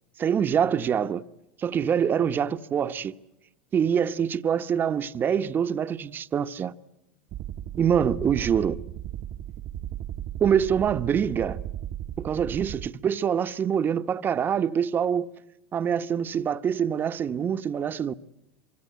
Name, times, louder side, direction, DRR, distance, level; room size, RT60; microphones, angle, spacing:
voice 1, 0.2-1.2 1.6-3.2 3.7-6.7 7.8-8.8 10.4-11.6 12.2-15.3 15.7-18.1, right 8 dB, 30° right, 1.1 m, -25 dB
sound 1, 7.3-12.9, right 12 dB, 50° right, 1.1 m, -36 dB
25.5 x 25.0 x 8.0 m
hypercardioid pair, 90°, 6 cm